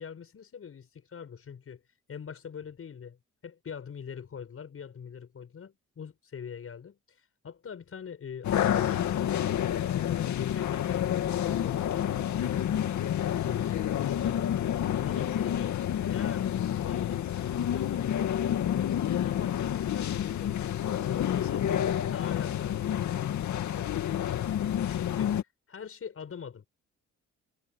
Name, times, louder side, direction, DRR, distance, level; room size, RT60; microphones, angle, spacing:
voice 1, 0.0-1.8 2.1-3.2 3.4-9.0 9.6-13.2 13.4-15.8 16.1-18.4 19.2-26.7, left 7 dB, 50° left, 6.2 m, -44 dB
sound 1, 8.4-25.4, left 10 dB, 70° left, 2.4 m, -29 dB
cardioid pair, 90°, 30 cm